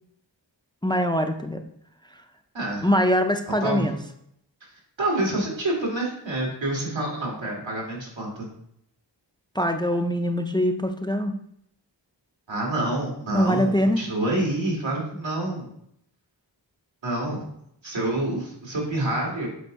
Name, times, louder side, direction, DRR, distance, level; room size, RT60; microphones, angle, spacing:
voice 1, 0.8-1.6 2.8-4.0 9.5-11.3 13.3-14.0, equal, 10° left, 6 dB, 0.5 m, -23 dB
voice 2, 2.5-2.9 3.6-3.9 5.0-8.5 12.5-15.7 17.0-17.5 17.8-19.5, right 1 dB, 80° right, -3 dB, 2.3 m, -27 dB
7.9 x 2.7 x 4.8 m, 0.73 s
wide cardioid pair, 45°, 45 cm